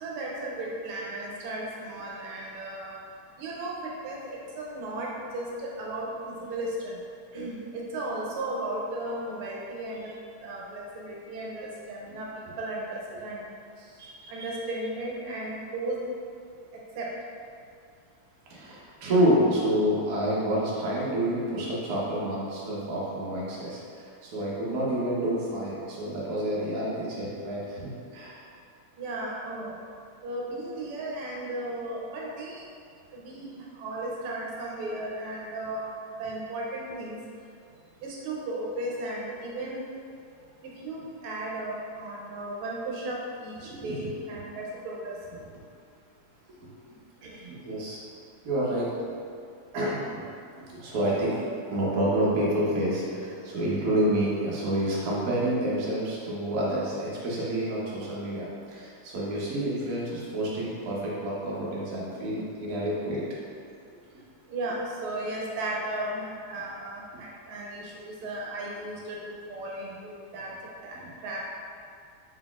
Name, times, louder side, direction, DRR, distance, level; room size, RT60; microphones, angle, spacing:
voice 1, 0.0-3.0 3.4-6.1 6.5-6.9 7.3-10.1 10.4-12.3 12.6-13.5 14.3-16.0 17.0-17.1 29.0-29.7 30.2-32.6 33.1-35.8 36.2-37.2 38.0-39.8 40.6-45.2 47.2-47.5 64.5-70.5 70.8-71.5, right 1 dB, 80° right, -3 dB, 1.5 m, -35 dB
voice 2, 14.0-14.5 18.5-28.4 43.6-44.1 46.6-46.7 47.5-48.0 48.4-48.9 49.7-50.2 50.6-63.2, right 1 dB, 60° right, -6 dB, 1.0 m, -28 dB
4.0 x 3.9 x 2.3 m, 2.4 s
omnidirectional pair, 2.4 m